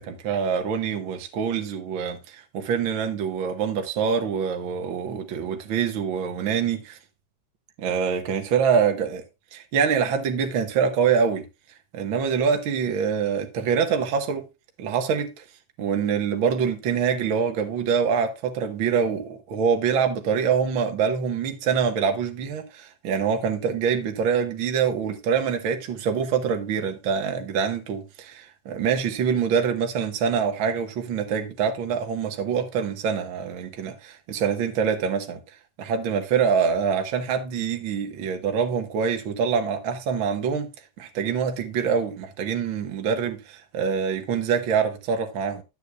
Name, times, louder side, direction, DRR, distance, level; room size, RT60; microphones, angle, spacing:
voice 1, 0.0-7.0 7.8-9.2 9.5-11.4 11.9-14.4 14.8-15.3 15.8-35.4 35.8-40.7 41.0-45.6, right 6 dB, 55° right, 1.5 m, -25 dB
12.5 x 8.2 x 2.3 m
omnidirectional pair, 3.6 m